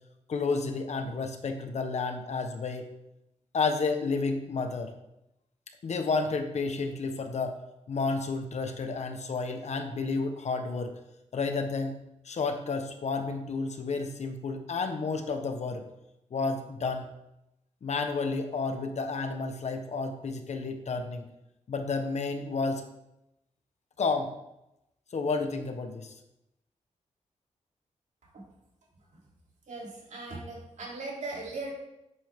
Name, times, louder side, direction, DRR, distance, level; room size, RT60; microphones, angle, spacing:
voice 1, 0.3-2.9 3.5-4.9 5.8-7.6 7.9-10.9 11.3-12.0 12.2-15.8 16.3-17.1 17.8-21.3 21.7-22.8 24.0-24.3 25.1-26.1, left 4 dB, 60° left, 6 dB, 1.2 m, -31 dB
voice 2, 29.7-31.8, right 2 dB, 70° right, -3 dB, 3.3 m, -38 dB
11.0 x 8.5 x 3.7 m, 0.87 s
wide cardioid pair, 140°, 13 cm